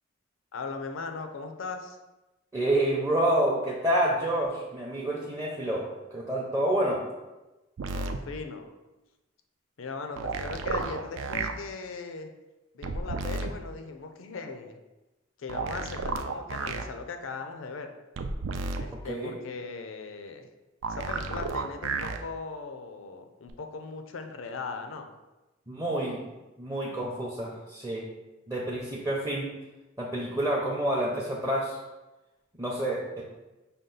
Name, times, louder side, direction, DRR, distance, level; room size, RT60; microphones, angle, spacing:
voice 1, 0.5-2.0 7.9-8.7 9.8-12.3 12.7-14.8 15.4-17.9 18.8-20.5 20.9-25.1, left 4 dB, 90° left, 6 dB, 0.5 m, -38 dB
voice 2, 2.5-7.0 19.0-19.3 25.7-26.2 26.6-28.1 28.5-29.5 30.0-31.8 32.6-33.2, right 1 dB, 15° right, -4 dB, 0.5 m, -28 dB
sound 1, 7.8-8.2 10.2-11.5 12.8-13.5 15.5-16.8 18.2-18.8 20.8-22.2 23.5-23.6, right 4 dB, 75° right, 0.4 m, -32 dB
5.2 x 2.3 x 3.8 m, 1.1 s
head